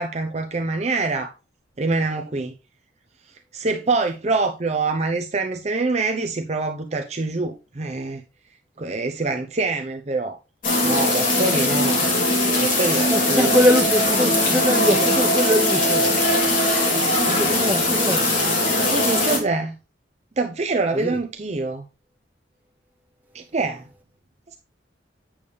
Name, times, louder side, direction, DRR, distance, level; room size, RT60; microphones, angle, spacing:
voice 1, 0.0-1.3 1.8-2.5 3.3-8.2 8.8-10.4 10.8-12.1 12.6-13.6 18.9-19.7 20.4-21.8 23.3-23.9, right 3 dB, 35° right, 0.6 m, -25 dB
sound 1, 10.6-19.4, left 1 dB, 45° left, 3.3 m, -20 dB
voice 2, 13.1-16.1 16.9-18.3 20.9-21.2, equal, 10° right, 1.5 m, -22 dB
8.6 x 6.9 x 3.3 m
head